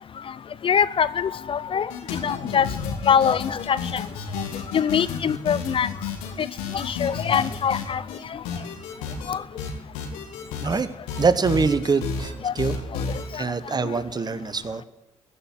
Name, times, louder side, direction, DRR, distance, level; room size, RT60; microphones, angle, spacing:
voice 1, 0.6-2.7 3.1-4.0 4.7-5.9 6.7-8.0 8.3-8.4 9.3-9.4 12.4-12.5 13.3-13.4, left 7 dB, 40° left, 17 dB, 0.5 m, -23 dB
sound 1, 1.9-8.2 8.4-9.3 9.6-10.8 11.1-12.3 12.6-13.2, left 5 dB, 80° left, 1.9 m, -31 dB
voice 2, 11.2-12.8 13.3-14.8, right 4 dB, 30° right, 14 dB, 1.0 m, -24 dB
15.5 x 6.2 x 10.0 m, 0.98 s
hypercardioid pair, 50°, 13 cm